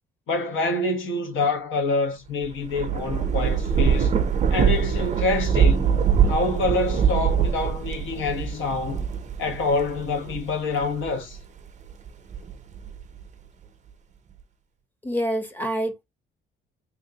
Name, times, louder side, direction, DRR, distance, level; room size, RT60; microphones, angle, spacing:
voice 1, 0.3-4.1 4.5-9.1 9.4-11.4, left 3 dB, 65° left, 1.1 m, -26 dB
Thunder / Rain, 2.4-11.4 11.9-13.2, right 7 dB, 35° right, 0.5 m, -23 dB
voice 2, 15.0-16.0, equal, 10° left, 0.8 m, -27 dB
3.4 x 2.4 x 2.8 m
cardioid pair, 140°, 21 cm